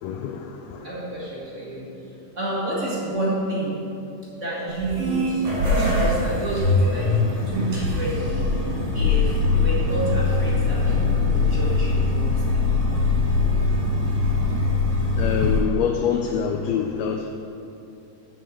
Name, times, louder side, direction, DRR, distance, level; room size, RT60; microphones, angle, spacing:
voice 1, 0.0-0.9 15.2-17.3, left 7 dB, 85° left, 4 dB, 1.5 m, -25 dB
voice 2, 0.8-3.8 4.4-8.7 8.9-12.7, right 1 dB, 35° right, -7 dB, 1.2 m, -30 dB
sound 1, 4.7-15.6, left 3 dB, 60° right, 3.5 m, -22 dB
7.7 x 5.6 x 7.3 m, 2.8 s
omnidirectional pair, 3.5 m